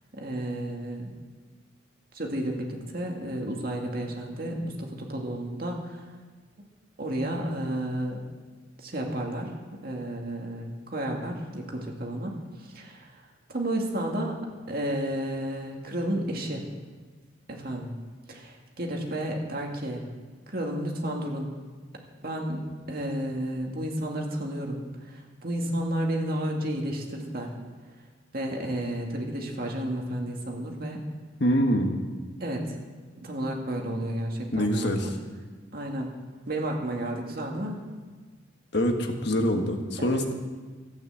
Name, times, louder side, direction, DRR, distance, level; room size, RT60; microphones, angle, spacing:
voice 1, 0.1-1.1 2.1-6.1 7.0-8.2 8.8-9.5 9.8-13.2 13.5-14.4 14.7-16.6 17.5-18.0 18.3-20.0 20.5-21.5 22.2-22.6 22.9-27.5 28.3-31.0 32.4-32.8 33.2-35.1 35.7-36.1 36.5-37.8 40.0-40.2, right 1 dB, 50° right, 1 dB, 2.2 m, -32 dB
voice 2, 31.4-32.0 34.5-35.1 38.7-40.3, equal, 60° left, 4 dB, 1.5 m, -25 dB
14.0 x 9.2 x 7.8 m, 1.4 s
head